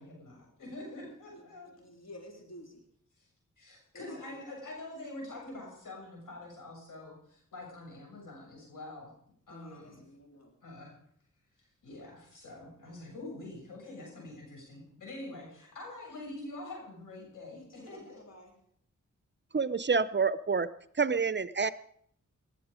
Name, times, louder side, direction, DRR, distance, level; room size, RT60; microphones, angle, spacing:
voice 1, 0.0-1.7 3.2-3.3 3.6-9.1 9.5-10.0 10.6-10.9 11.8-18.2, left 2 dB, 85° left, 0 dB, 7.1 m, -45 dB
voice 2, 1.3-2.9 3.9-4.4 9.5-10.5 17.5-18.5, left 1 dB, 55° left, 2 dB, 3.7 m, -51 dB
voice 3, 19.5-20.7 21.0-21.7, right 5 dB, 35° right, 15 dB, 0.7 m, -27 dB
19.5 x 11.5 x 5.1 m, 0.66 s
cardioid pair, 60°, 31 cm